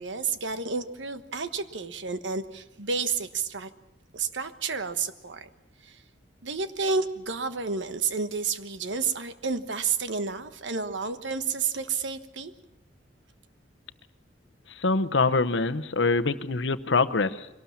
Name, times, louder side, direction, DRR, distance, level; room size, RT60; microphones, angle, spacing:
voice 1, 0.0-3.7 4.1-5.5 5.8-6.0 6.4-12.5, right 5 dB, 90° right, 10 dB, 1.2 m, -30 dB
voice 2, 14.7-17.5, left 3 dB, 75° left, 10 dB, 0.9 m, -24 dB
23.0 x 18.5 x 7.3 m, 0.96 s
head